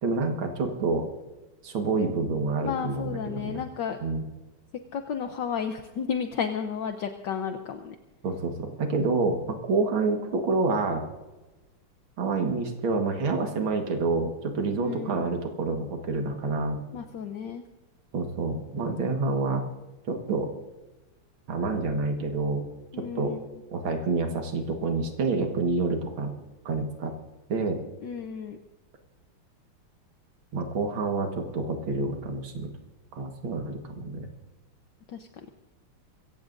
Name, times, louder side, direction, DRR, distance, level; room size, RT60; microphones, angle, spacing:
voice 1, 0.0-1.1 1.6-3.6 4.0-4.2 8.2-11.0 12.2-16.8 18.1-19.7 20.1-20.5 21.5-22.6 23.2-23.4 23.7-26.3 26.7-27.1 27.5-27.8 30.5-32.7 33.1-34.3, right 3 dB, 70° right, 4 dB, 2.3 m, -28 dB
voice 2, 2.6-4.0 4.9-8.0 14.8-15.3 16.9-17.6 22.9-23.6 28.0-28.6 35.1-35.3, left 7 dB, 65° left, 6 dB, 1.3 m, -33 dB
24.0 x 16.0 x 2.6 m, 1.1 s
omnidirectional pair, 2.3 m